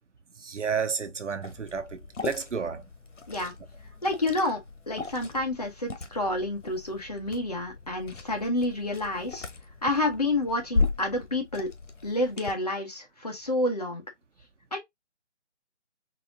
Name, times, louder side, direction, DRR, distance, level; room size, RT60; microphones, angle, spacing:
voice 1, 0.4-2.8, right 6 dB, 80° right, 1.0 m, -31 dB
Liquid, 1.4-12.5, left 3 dB, 85° left, 1.1 m, -36 dB
voice 2, 4.0-4.6 4.9-9.5 9.8-11.7 12.0-14.0 14.7-14.8, left 1 dB, 35° left, 1.0 m, -29 dB
4.2 x 2.8 x 2.6 m
hypercardioid pair, 180°, 36 cm